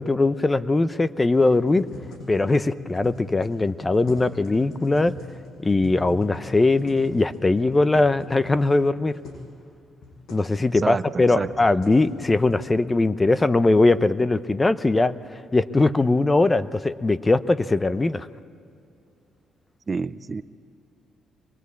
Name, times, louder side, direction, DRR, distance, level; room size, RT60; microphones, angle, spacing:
voice 1, 0.0-1.8 2.3-5.1 5.6-9.2 10.3-15.1 15.5-18.3, left 2 dB, 20° left, 14 dB, 0.7 m, -20 dB
sound 1, 1.3-9.5 9.7-9.8 10.0-10.4 11.1-12.7, left 3 dB, 75° left, 7.1 m, -41 dB
voice 2, 10.7-11.7 19.9-20.4, right 4 dB, 35° right, 15 dB, 0.5 m, -29 dB
24.5 x 21.5 x 8.4 m, 2.5 s
cardioid pair, 90°, 0 cm